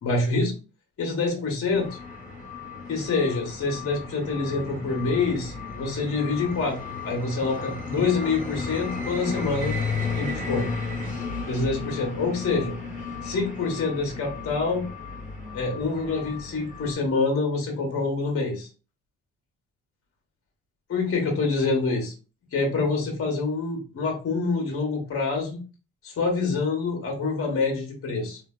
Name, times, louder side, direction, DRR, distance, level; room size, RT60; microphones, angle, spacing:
voice 1, 0.0-0.5 1.0-2.0 2.9-6.8 7.0-9.8 10.2-10.7 11.5-12.8 13.2-14.9 15.5-18.7 20.9-22.1 22.5-25.6 26.0-28.4, left 3 dB, 50° left, 0 dB, 0.9 m, -26 dB
sound 1, 1.7-16.9, left 4 dB, 25° left, 1.1 m, -34 dB
3.2 x 2.3 x 2.3 m, 0.34 s
cardioid pair, 90°, 30 cm